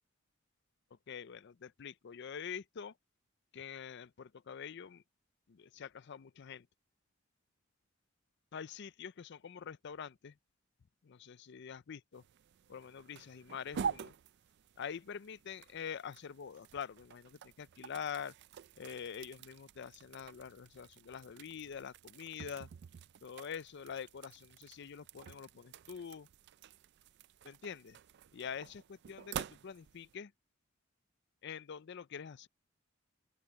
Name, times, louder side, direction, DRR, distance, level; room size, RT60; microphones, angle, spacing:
voice 1, 1.1-2.9 3.5-5.0 5.5-6.7 8.5-10.3 11.0-12.2 12.7-14.1 14.8-18.3 18.8-22.7 23.2-26.3 27.4-28.0 28.3-30.3 31.4-32.5, left 7 dB, 60° left, 0.5 m, -45 dB
sound 1, 12.1-30.2, right 7 dB, 55° right, 0.4 m, -48 dB
open air
head